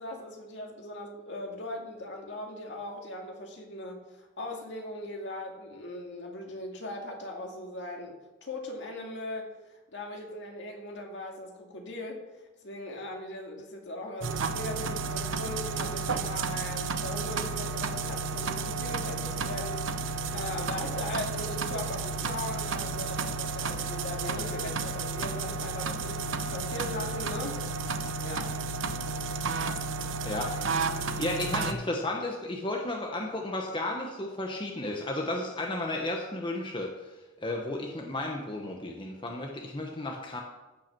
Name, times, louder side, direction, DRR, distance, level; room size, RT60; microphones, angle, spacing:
voice 1, 0.0-12.3 12.6-27.6 28.2-28.6, left 1 dB, 65° left, 1 dB, 2.2 m, -39 dB
sound 1, 14.2-31.7, right 4 dB, 80° right, 0.8 m, -32 dB
voice 2, 31.2-37.1 37.4-40.4, left 1 dB, 25° left, 1 dB, 1.0 m, -33 dB
15.0 x 5.8 x 6.0 m, 1.1 s
head